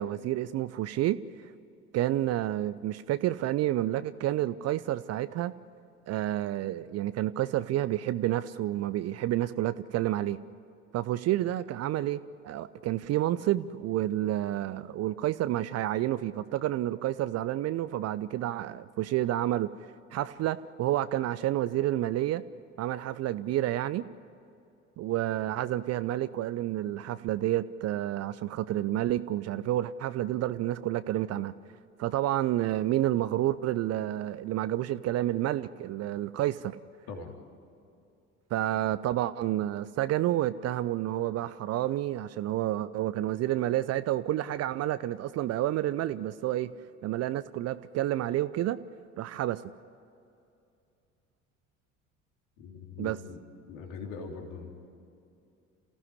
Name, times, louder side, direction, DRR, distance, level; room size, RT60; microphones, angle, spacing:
voice 1, 0.0-1.5 1.9-5.5 6.1-10.4 10.9-22.4 22.8-24.1 25.0-31.5 32.0-36.8 38.5-46.7 47.0-48.8 49.2-49.7 53.0-53.2, right 13 dB, 40° right, 14 dB, 0.6 m, -29 dB
voice 2, 52.6-53.4 53.7-54.7, left 5 dB, 60° left, 2 dB, 3.1 m, -41 dB
28.0 x 15.5 x 9.8 m, 2.6 s
figure-of-eight pair, 60°, 38 cm